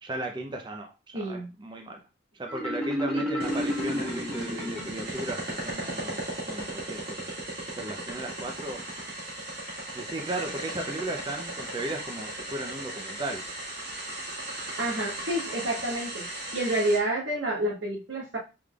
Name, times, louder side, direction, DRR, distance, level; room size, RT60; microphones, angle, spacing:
voice 1, 0.0-2.0 2.3-6.2 6.5-7.2 7.7-8.8 9.9-13.4, right 2 dB, 25° right, 2 dB, 0.5 m, -36 dB
voice 2, 1.1-1.5 3.1-3.2 14.8-16.2 16.5-18.4, right 1 dB, 85° right, -3 dB, 1.5 m, -29 dB
Marimba xylophone, 2.5-5.2, left 1 dB, 5° left, 1.4 m, -31 dB
sound 1, 3.4-17.0, right 1 dB, 55° right, 2.0 m, -37 dB
4.9 x 3.7 x 2.3 m, 0.28 s
head